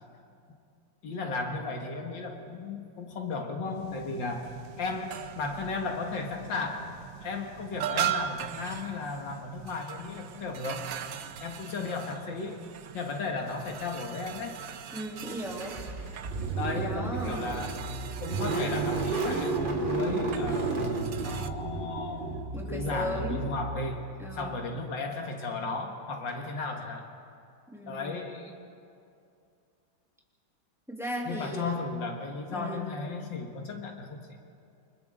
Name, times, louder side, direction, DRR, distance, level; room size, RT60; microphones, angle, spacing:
voice 1, 1.0-6.9 7.2-10.9 11.4-14.6 16.6-17.8 18.2-22.4 22.7-27.1 27.8-28.5 31.3-34.3, left 3 dB, 80° left, 2 dB, 2.3 m, -35 dB
sound 1, 3.7-21.5, right 10 dB, 65° right, 1.0 m, -40 dB
voice 2, 14.9-15.8 16.7-17.5 22.5-23.4 24.2-24.6 27.7-28.2 30.9-31.8 32.5-32.9, equal, ahead, -3 dB, 3.1 m, -36 dB
Car / Engine starting, 15.6-24.4, right 3 dB, 30° right, 1.3 m, -32 dB
29.0 x 25.0 x 3.8 m, 2.5 s
omnidirectional pair, 2.0 m